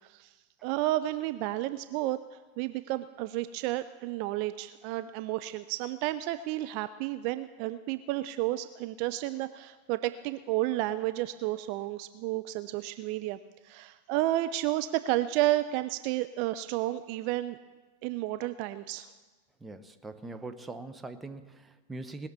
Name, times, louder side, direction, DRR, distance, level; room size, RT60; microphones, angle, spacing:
voice 1, 0.0-0.3 0.6-13.4 13.6-17.6 18.0-19.1, right 15 dB, 45° right, 12 dB, 0.4 m, -31 dB
voice 2, 19.6-22.3, right 2 dB, 10° right, 8 dB, 0.8 m, -42 dB
19.5 x 6.5 x 7.1 m, 1.3 s
figure-of-eight pair, 90°, 0 cm